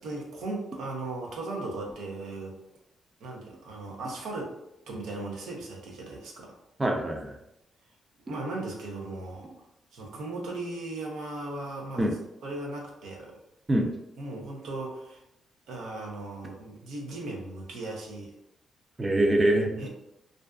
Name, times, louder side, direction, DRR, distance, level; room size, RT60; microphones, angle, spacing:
voice 1, 0.0-2.6 3.2-4.6 4.9-6.6 8.3-9.5 9.9-12.0 12.4-13.4 14.2-15.2 15.7-18.3 19.6-19.9, right 2 dB, 90° right, -1 dB, 0.6 m, -37 dB
voice 2, 6.8-7.3 12.0-12.1 13.7-13.9 19.0-19.9, right 1 dB, 25° right, 2 dB, 0.5 m, -24 dB
2.5 x 2.3 x 2.3 m, 0.85 s
cardioid pair, 95°, 0 cm